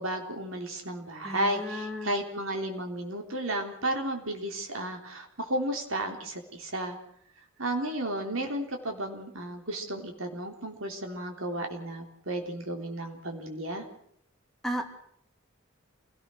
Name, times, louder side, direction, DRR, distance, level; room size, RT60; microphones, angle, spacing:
voice 1, 0.0-7.0 7.6-13.9, right 1 dB, 75° right, 3 dB, 3.9 m, -33 dB
voice 2, 1.2-2.1 14.6-14.8, equal, ahead, 1 dB, 2.7 m, -34 dB
27.5 x 18.0 x 6.5 m, 0.68 s
head